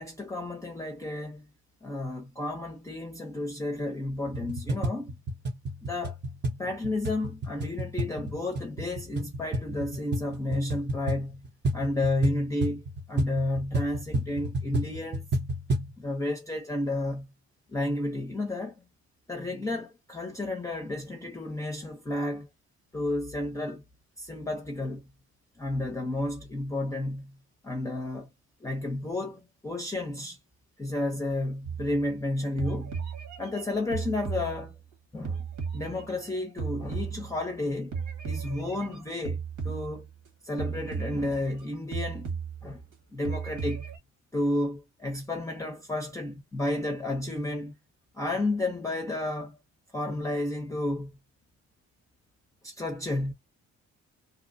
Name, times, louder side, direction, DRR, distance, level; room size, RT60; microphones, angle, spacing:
voice 1, 0.0-1.5 1.8-5.2 5.8-6.2 6.6-11.5 11.7-15.3 16.0-17.3 17.7-18.8 19.3-22.5 22.9-23.8 24.2-25.1 25.6-27.4 27.6-28.3 28.6-30.4 30.8-33.0 33.4-34.8 35.1-35.4 35.7-40.1 40.4-42.3 42.6-42.8 43.1-43.8 44.3-47.8 48.2-49.6 49.9-51.1 52.6-53.3, left 2 dB, 10° left, 0.5 m, -32 dB
sound 1, 4.3-15.9, right 1 dB, 35° right, 0.7 m, -32 dB
sound 2, 31.6-32.3 32.6-34.9 35.2-37.6 37.9-40.3 40.6-41.7 41.9-42.9 43.2-44.0, right 6 dB, 80° right, 1.4 m, -35 dB
2.8 x 2.0 x 2.5 m
cardioid pair, 90°, 30 cm